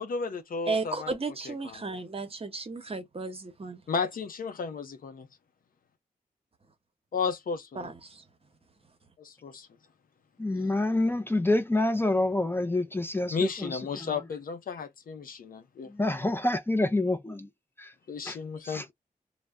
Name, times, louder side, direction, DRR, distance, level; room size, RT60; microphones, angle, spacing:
voice 1, 0.0-1.1 1.5-2.0 3.9-5.3 7.1-7.9 9.2-9.7 13.3-15.9 18.1-18.8, left 5 dB, 70° left, 0.6 m, -33 dB
voice 2, 0.7-3.8 7.8-8.2, right 3 dB, 40° right, 0.9 m, -34 dB
voice 3, 10.4-14.2 15.9-17.5 17.8-17.9 18.2-18.4 18.6-18.8, left 2 dB, 15° left, 0.4 m, -27 dB
2.1 x 2.1 x 3.4 m
cardioid pair, 45°, 15 cm